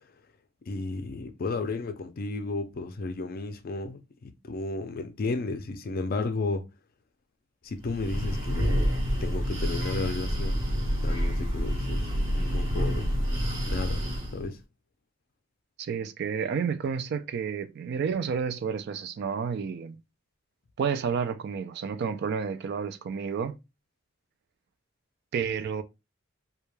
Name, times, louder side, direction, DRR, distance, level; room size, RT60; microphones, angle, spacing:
voice 1, 0.7-6.7 7.6-8.9 9.2-10.6 11.0-13.1 13.7-14.0 14.3-14.6, left 3 dB, 50° left, 0.4 m, -33 dB
Breathing, 7.8-14.4, equal, 80° right, 1.1 m, -28 dB
voice 2, 15.8-20.0 20.8-23.6 25.3-25.8, right 6 dB, 55° right, 0.3 m, -30 dB
2.2 x 2.2 x 3.1 m
head